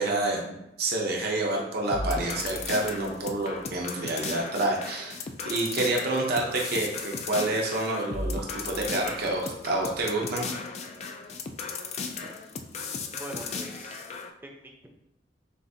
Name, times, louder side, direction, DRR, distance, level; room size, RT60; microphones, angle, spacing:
voice 1, 0.0-5.2 5.4-10.4, right 2 dB, 60° right, -1 dB, 0.7 m, -28 dB
sound 1, 1.9-14.3, left 4 dB, 35° left, 0.4 m, -36 dB
voice 2, 12.7-14.0 14.4-14.9, right 1 dB, 10° right, 1 dB, 0.6 m, -44 dB
6.9 x 2.5 x 2.7 m, 0.86 s
head